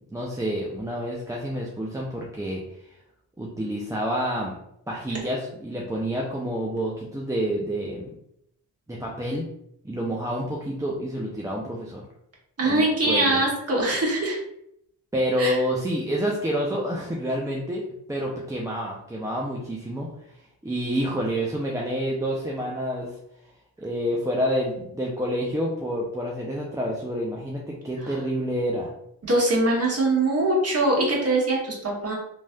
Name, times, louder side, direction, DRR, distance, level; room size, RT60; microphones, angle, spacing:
voice 1, 0.1-2.6 3.4-4.6 4.9-8.1 8.9-9.5 9.8-12.0 12.6-13.4 15.1-17.8 18.1-20.1 20.6-23.2 23.8-28.9, equal, 10° right, -3 dB, 0.5 m, -28 dB
voice 2, 12.6-14.4 15.4-15.6 29.2-32.2, right 2 dB, 35° right, -4 dB, 1.4 m, -22 dB
3.1 x 2.7 x 2.3 m, 0.76 s
supercardioid pair, 50°, 40 cm